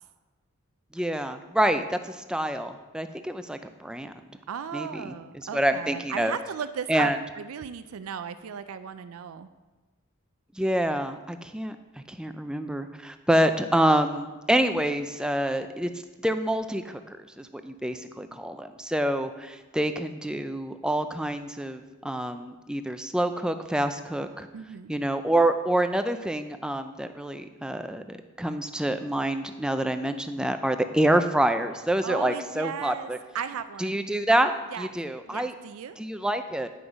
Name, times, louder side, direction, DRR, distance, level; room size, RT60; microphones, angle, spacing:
voice 1, 0.9-4.1 4.7-5.1 5.5-6.3 6.9-7.2 10.6-11.8 12.1-15.9 16.2-24.5 24.9-33.2 33.8-35.5 36.0-36.7, right 1 dB, 5° right, 8 dB, 0.4 m, -27 dB
voice 2, 4.5-9.5 24.5-24.9 32.0-34.0 34.7-34.9 35.3-36.0, right 7 dB, 80° right, 12 dB, 0.4 m, -36 dB
9.4 x 6.0 x 5.1 m, 1.2 s
head